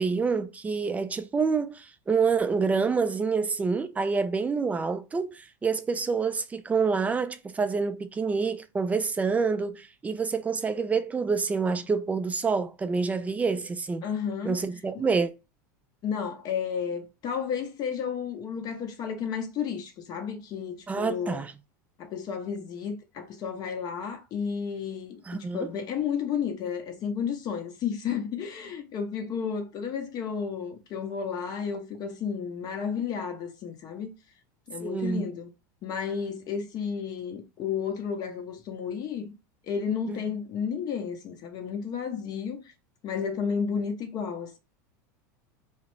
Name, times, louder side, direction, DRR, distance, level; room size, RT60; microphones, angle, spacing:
voice 1, 0.0-14.1 14.4-15.3 20.9-21.5 25.3-25.7 34.8-35.3 40.1-40.3, right 5 dB, 15° right, 0.3 m, -27 dB
voice 2, 14.0-14.6 14.9-15.0 16.0-21.4 22.0-25.2 25.5-34.1 34.7-35.5 35.8-39.3 39.7-42.6 43.0-44.6, left 7 dB, 45° left, 0.7 m, -32 dB
2.4 x 2.0 x 3.0 m
hypercardioid pair, 105°, 10 cm